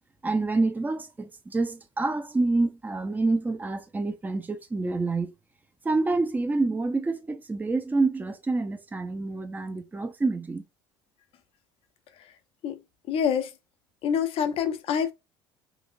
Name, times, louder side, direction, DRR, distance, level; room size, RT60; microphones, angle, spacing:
voice 1, 0.2-5.3 5.8-10.6, right 3 dB, 15° right, 0.6 m, -27 dB
voice 2, 13.1-13.5 14.0-15.1, left 7 dB, 45° left, 0.7 m, -26 dB
4.0 x 2.8 x 2.5 m
figure-of-eight pair, 65°, 13 cm